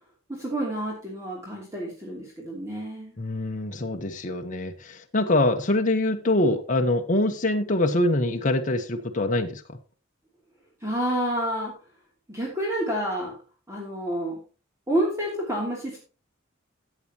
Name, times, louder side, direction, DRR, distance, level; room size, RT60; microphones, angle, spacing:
voice 1, 0.3-3.1 10.8-11.7 12.3-13.3 13.7-14.4 14.9-16.0, right 1 dB, 15° right, 2.9 m, -29 dB
voice 2, 3.2-9.8, left 1 dB, 40° left, 1.0 m, -24 dB
14.0 x 8.4 x 3.0 m
head